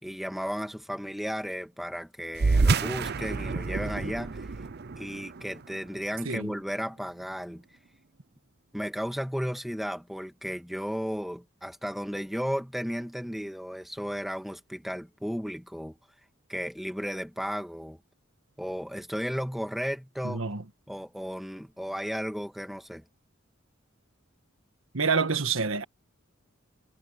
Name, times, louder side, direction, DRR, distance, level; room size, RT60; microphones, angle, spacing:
voice 1, 0.0-4.6 5.0-7.6 8.7-16.0 16.5-18.0 18.6-20.4 20.9-23.0, equal, ahead, 1.8 m, -34 dB
sound 1, 2.3-7.2, right 3 dB, 55° right, 0.7 m, -29 dB
voice 2, 20.2-20.6 24.9-25.8, right 5 dB, 80° right, 1.6 m, -27 dB
head